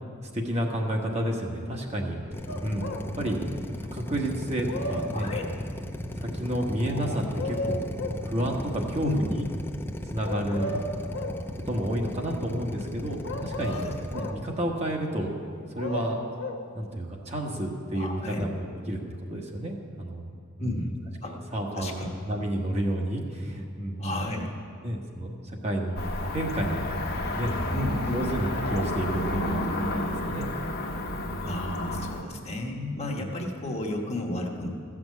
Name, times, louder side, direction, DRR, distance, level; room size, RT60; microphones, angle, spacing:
voice 1, 0.3-2.2 2.6-2.9 3.2-3.4 3.9-5.3 6.2-7.8 8.2-9.4 10.0-10.8 11.5-13.8 14.1-15.3 15.7-16.2 16.7-19.0 19.3-20.3 20.6-20.9 21.2-24.3 24.8-26.8 27.4-27.5 28.1-30.5 31.2-31.8 33.2-33.3, right 1 dB, 30° right, 0 dB, 1.3 m, -30 dB
Drill, 2.3-14.3, left 1 dB, 10° left, 0.6 m, -36 dB
sound 1, 2.5-3.1 4.4-5.6 6.8-8.3 10.2-11.4 13.2-14.4 15.5-16.7 17.9-18.0, left 1 dB, 75° left, 1.0 m, -34 dB
voice 2, 5.1-5.5 9.0-9.3 13.7-13.9 18.0-18.4 20.6-20.9 21.2-21.3 21.7-22.1 24.0-24.5 27.7-28.2 31.5-34.7, left 2 dB, 30° left, 0 dB, 1.2 m, -32 dB
Cricket / Motor vehicle (road), 26.0-32.2, left 1 dB, 50° left, 1.3 m, -31 dB
14.0 x 6.1 x 8.4 m, 2.2 s
head